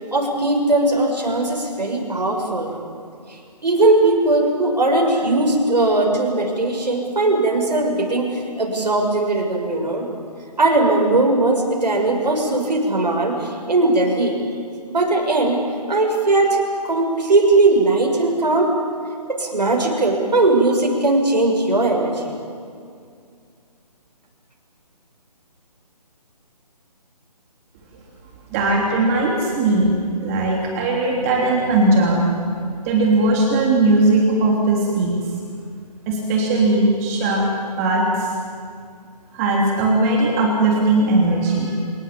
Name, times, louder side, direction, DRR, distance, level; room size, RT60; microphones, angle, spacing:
voice 1, 0.1-2.7 3.3-10.1 10.6-14.4 14.9-15.6 15.9-16.6 16.8-18.7 19.3-22.4, right 2 dB, 85° right, 1 dB, 6.4 m, -19 dB
voice 2, 28.5-29.9 30.2-32.2 32.8-35.1 36.1-37.5 37.8-38.3 39.3-41.8, right 2 dB, 20° right, -1 dB, 3.2 m, -18 dB
26.5 x 19.0 x 8.7 m, 2.3 s
hypercardioid pair, 155°, 21 cm